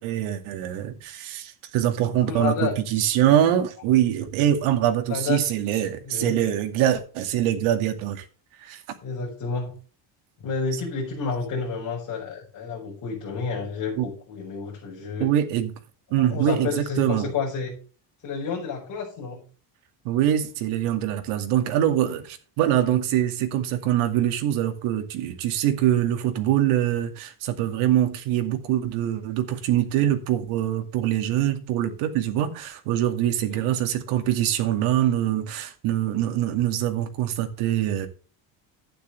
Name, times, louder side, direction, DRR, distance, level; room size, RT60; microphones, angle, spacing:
voice 1, 0.0-8.2 8.6-8.8 14.0-14.1 15.2-15.7 16.1-17.3 20.0-38.1, right 11 dB, 85° right, 2.4 m, -24 dB
voice 2, 2.2-3.1 5.1-5.4 6.0-6.4 9.0-9.7 10.4-15.3 16.2-17.7 18.2-19.4 33.4-33.6, left 5 dB, 40° left, 5.7 m, -30 dB
12.0 x 9.8 x 3.3 m
cardioid pair, 175°, 48 cm